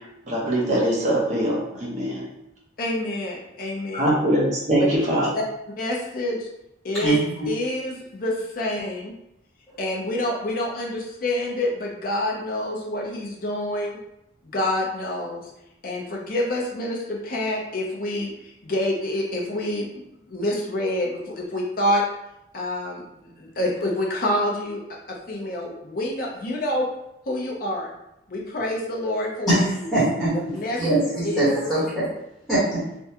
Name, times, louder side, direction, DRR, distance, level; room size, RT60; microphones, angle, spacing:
voice 1, 0.3-2.2 3.9-5.3, right 1 dB, 40° right, -4 dB, 0.8 m, -22 dB
voice 2, 2.8-4.1 4.8-4.9 5.3-5.4 5.8-6.5 6.8-7.2 7.4-9.1 9.8-14.0 14.4-15.5 15.8-19.9 20.3-22.0 22.5-24.8 25.1-26.9 27.3-27.9 28.3-29.9 30.5-31.7, left 1 dB, 45° left, -2 dB, 0.6 m, -27 dB
voice 3, 7.0-7.5 29.5-29.6 29.9-30.4 30.8-32.1 32.5-32.8, right 1 dB, ahead, -12 dB, 1.1 m, -22 dB
3.4 x 2.2 x 2.8 m, 0.84 s
head